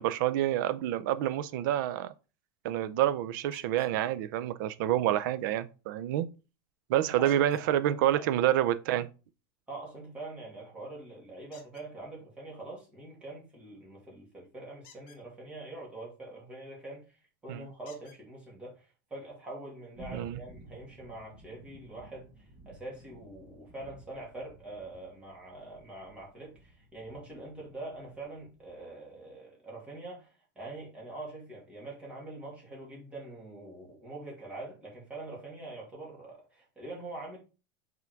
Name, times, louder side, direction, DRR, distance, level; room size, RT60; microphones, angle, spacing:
voice 1, 0.0-2.1 2.6-6.3 6.9-9.1 17.5-17.7 20.1-20.4, right 12 dB, 65° right, 0.5 m, -28 dB
sound 1, 3.5-4.0 7.2-7.7 11.5-11.9 14.8-15.2 16.9-17.0 17.8-18.2 19.2-19.3 19.8-19.9, left 8 dB, 45° left, 1.5 m, -56 dB
voice 2, 6.9-7.6 7.9-8.3 9.7-37.4, right 2 dB, 10° right, 2.4 m, -44 dB
sound 2, 19.9-28.9, right 1 dB, 25° right, 1.2 m, -54 dB
5.7 x 3.8 x 4.5 m
supercardioid pair, 170°, 11 cm